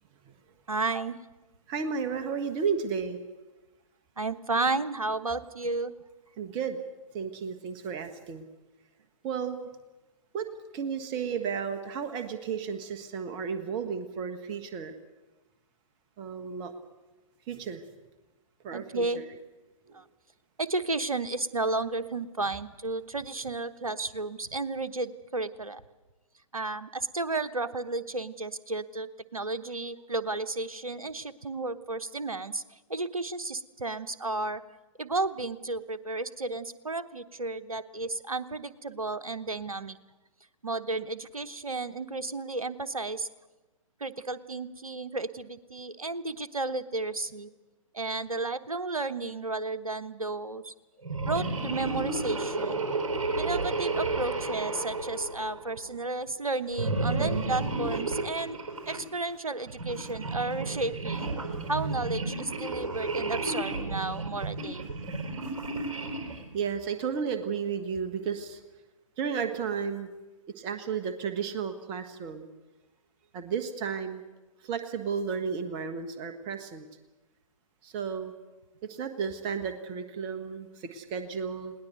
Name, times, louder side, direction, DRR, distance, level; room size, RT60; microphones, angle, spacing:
voice 1, 0.7-1.2 4.2-5.9 18.7-19.2 19.9-20.0 20.6-25.8 26.5-34.6 35.0-40.0 40.6-43.3 44.0-47.5 47.9-50.7 51.3-52.9 53.3-58.6 58.9-61.3 61.6-64.9, right 3 dB, 80° right, 12 dB, 1.1 m, -33 dB
voice 2, 1.7-3.2 6.4-6.8 7.1-8.4 9.2-9.6 10.3-10.5 10.7-14.9 16.2-16.7 17.5-17.8 18.6-19.2 19.9-20.0 57.2-57.5 61.4-61.7 65.0-65.5 66.3-68.6 69.2-70.1 70.6-72.5 73.3-74.2 74.6-76.9 77.8-78.3 78.8-81.7, right 6 dB, 25° right, 8 dB, 1.4 m, -33 dB
sound 1, 51.0-55.9 56.7-59.0 59.7-66.5, right 2 dB, 55° right, 4.6 m, -32 dB
20.5 x 18.5 x 7.9 m, 1.1 s
figure-of-eight pair, 125°, 18 cm